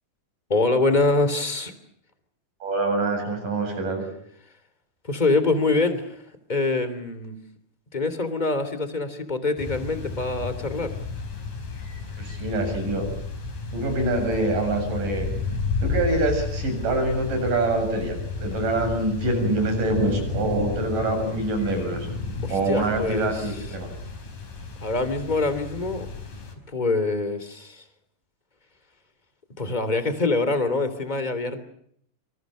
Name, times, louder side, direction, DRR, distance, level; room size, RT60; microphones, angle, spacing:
voice 1, 0.5-1.7 5.0-7.4 7.9-11.0 22.4-23.5 24.8-26.1 26.7-27.8 29.6-31.6, left 3 dB, 10° left, 11 dB, 2.5 m, -25 dB
voice 2, 2.6-4.1 12.2-13.1 13.7-15.3 15.8-22.1 22.5-23.9, right 2 dB, 50° right, 6 dB, 9.0 m, -25 dB
sound 1, 9.6-26.5, left 4 dB, 50° left, 6.5 m, -32 dB
27.5 x 27.0 x 6.4 m, 0.68 s
omnidirectional pair, 4.8 m